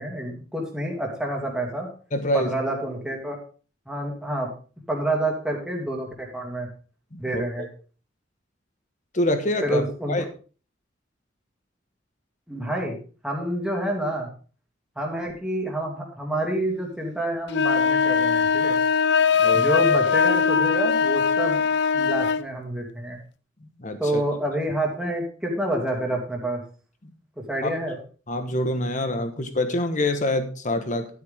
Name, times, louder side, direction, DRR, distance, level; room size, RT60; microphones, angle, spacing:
voice 1, 0.0-1.9 2.3-3.4 3.9-4.5 4.9-6.7 7.2-7.7 9.6-10.2 12.5-13.0 13.2-14.3 15.0-18.8 19.5-21.6 21.9-23.2 24.0-26.6 27.4-28.0, right 1 dB, 5° right, -1 dB, 2.6 m, -28 dB
voice 2, 2.1-2.5 7.1-7.7 9.1-9.8 10.1-10.2 19.4-19.7 23.6-24.2 27.6-27.7 28.3-31.1, left 1 dB, 40° left, 8 dB, 1.4 m, -26 dB
sound 1, 17.5-22.5, left 6 dB, 60° left, 0.5 m, -21 dB
11.0 x 9.5 x 3.6 m, 0.38 s
head